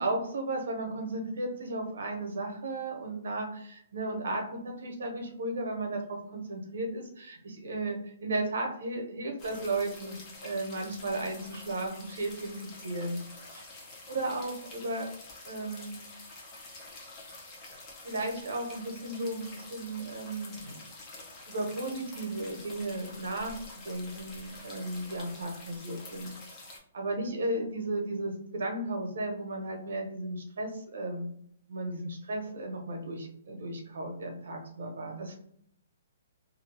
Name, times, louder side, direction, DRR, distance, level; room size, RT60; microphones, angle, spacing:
voice 1, 0.0-12.5 12.8-13.2 13.5-13.6 14.1-15.1 15.4-15.9 18.0-20.8 21.5-23.6 23.8-26.3 26.9-31.3 31.7-35.4, right 2 dB, 70° right, 2 dB, 1.0 m, -34 dB
sound 1, 9.4-26.8, left 2 dB, 20° left, 0.7 m, -48 dB
2.7 x 2.3 x 3.4 m, 0.67 s
hypercardioid pair, 165°, 0 cm